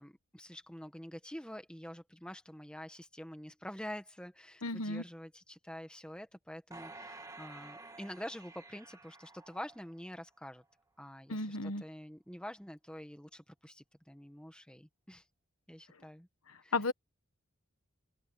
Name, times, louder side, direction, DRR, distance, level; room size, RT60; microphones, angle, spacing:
voice 1, 0.0-10.6 11.0-15.2 15.7-16.3 16.6-16.7, equal, 5° left, 1.5 m, -47 dB
voice 2, 4.6-5.0 11.3-11.8 16.5-16.9, left 3 dB, 80° left, 1.3 m, -34 dB
sound 1, 6.7-10.2 10.6-10.7, right 2 dB, 15° right, 2.0 m, -51 dB
head